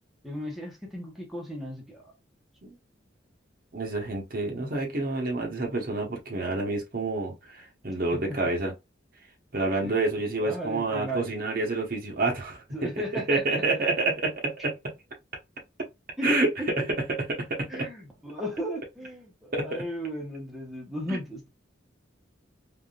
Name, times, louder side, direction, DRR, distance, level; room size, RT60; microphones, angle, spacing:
voice 1, 0.2-2.1 8.3-8.4 9.8-10.0 10.2-11.3 12.7-13.8 16.2-16.7 17.7-21.5, equal, ahead, 1.0 m, -35 dB
voice 2, 3.7-8.7 9.5-12.6 13.3-14.7 16.2-16.5 17.1-17.9 19.5-19.7 21.1-21.2, right 2 dB, 50° right, 1.0 m, -28 dB
3.5 x 2.5 x 2.3 m
head